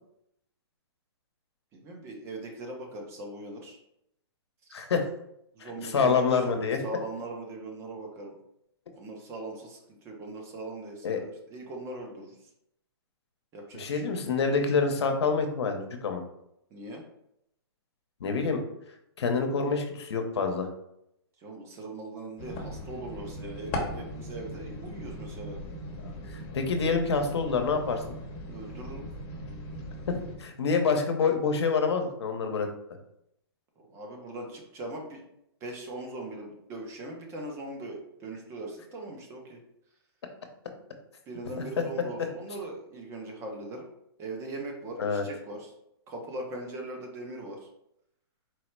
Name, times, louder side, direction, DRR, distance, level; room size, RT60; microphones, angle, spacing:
voice 1, 1.7-3.8 4.6-4.7 5.5-8.4 8.9-12.4 13.5-14.2 16.7-17.0 21.4-25.6 28.5-29.1 33.8-35.2 35.6-39.6 41.3-43.9 44.2-45.7 46.1-47.7, right 2 dB, 20° right, 2 dB, 0.7 m, -40 dB
voice 2, 4.7-5.1 5.6-6.8 11.0-11.2 13.7-16.2 18.2-18.6 19.2-20.7 26.0-28.0 30.1-32.7 45.0-45.2, left 5 dB, 85° left, 4 dB, 0.8 m, -27 dB
sound 1, 22.4-30.4, left 1 dB, 30° left, 0.9 m, -39 dB
4.5 x 2.1 x 4.5 m, 0.78 s
hypercardioid pair, 155°, 14 cm